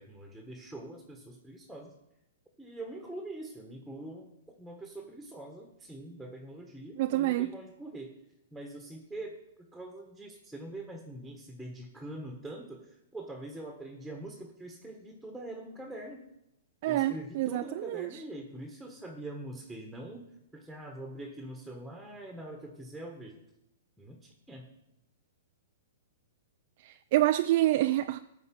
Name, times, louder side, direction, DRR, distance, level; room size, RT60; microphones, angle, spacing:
voice 1, 0.0-1.9 2.6-4.3 4.6-8.1 8.5-16.2 16.8-20.3 20.5-23.4 24.0-24.7, right 1 dB, ahead, 1.5 m, -44 dB
voice 2, 7.0-7.5 16.8-18.1 26.9-28.2, right 15 dB, 50° right, 0.4 m, -27 dB
14.0 x 5.0 x 8.7 m
hypercardioid pair, 140°, 0 cm